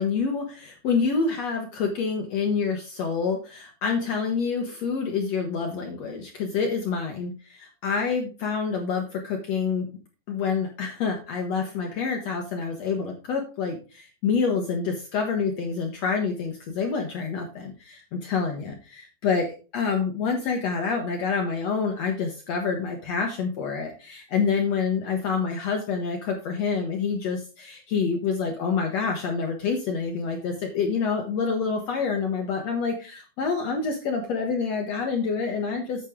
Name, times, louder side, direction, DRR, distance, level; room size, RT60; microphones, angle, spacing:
voice 1, 0.0-9.9 10.3-36.1, left 5 dB, 70° left, 3 dB, 1.5 m, -27 dB
8.6 x 8.4 x 3.6 m, 0.33 s
omnidirectional pair, 4.5 m